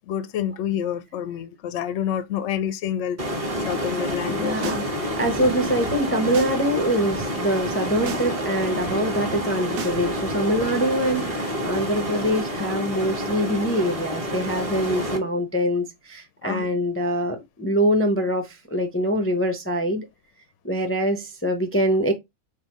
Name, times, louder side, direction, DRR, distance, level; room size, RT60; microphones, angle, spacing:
voice 1, 0.0-4.7 16.4-16.7, left 9 dB, 65° left, 0.8 m, -28 dB
sound 1, 3.2-15.2, equal, 25° right, 1.3 m, -28 dB
voice 2, 4.2-4.8 5.2-20.1 20.6-22.1, equal, 20° left, 0.3 m, -24 dB
sound 2, 4.5-4.9 5.1-6.6 6.9-7.2 7.7-8.3 8.6-10.6, right 8 dB, 65° right, 1.2 m, -38 dB
5.6 x 3.0 x 3.0 m
omnidirectional pair, 1.6 m